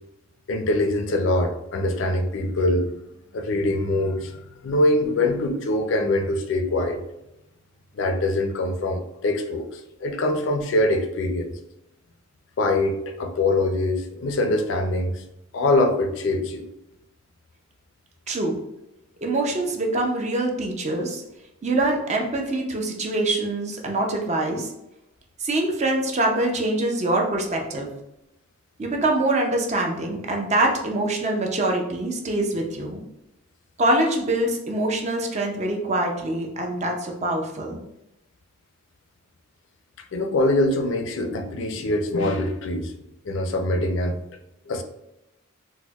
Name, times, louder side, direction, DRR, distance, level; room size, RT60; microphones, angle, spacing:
voice 1, 0.5-2.9 3.3-7.0 7.9-11.5 12.6-15.2 15.5-16.7 40.1-43.0 43.3-44.2 44.7-44.8, left 2 dB, 60° left, 6 dB, 0.4 m, -23 dB
voice 2, 18.3-18.6 19.2-21.2 21.6-24.7 25.4-27.9 28.8-33.0 33.8-37.8, right 2 dB, 35° right, 1 dB, 0.4 m, -24 dB
4.2 x 2.1 x 2.3 m, 0.89 s
head